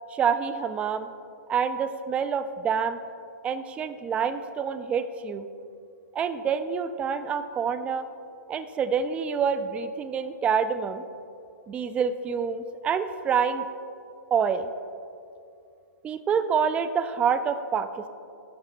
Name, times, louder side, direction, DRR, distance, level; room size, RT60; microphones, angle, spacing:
voice 1, 0.1-1.1 1.5-3.0 3.4-5.5 6.1-8.1 8.5-11.0 11.7-13.6 14.3-14.7 16.0-18.1, right 6 dB, 10° right, 11 dB, 0.3 m, -27 dB
12.0 x 11.5 x 2.5 m, 2.5 s
hypercardioid pair, 145°, 10 cm